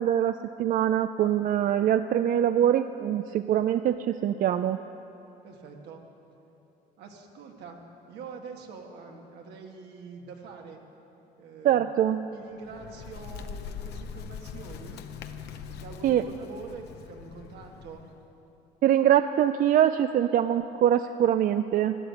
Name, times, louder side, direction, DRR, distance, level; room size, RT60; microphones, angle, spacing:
voice 1, 0.0-4.8 11.6-12.2 16.0-16.2 18.8-22.0, right 10 dB, 55° right, 10 dB, 0.4 m, -23 dB
voice 2, 5.4-6.0 7.0-7.8 8.1-10.8 11.4-11.8 12.3-15.0 15.7-18.1, right 5 dB, 80° right, 2 dB, 1.8 m, -45 dB
Bird, 12.5-18.3, left 7 dB, 75° left, 0.9 m, -42 dB
12.5 x 12.0 x 8.3 m, 3.0 s
cardioid pair, 110°, 17 cm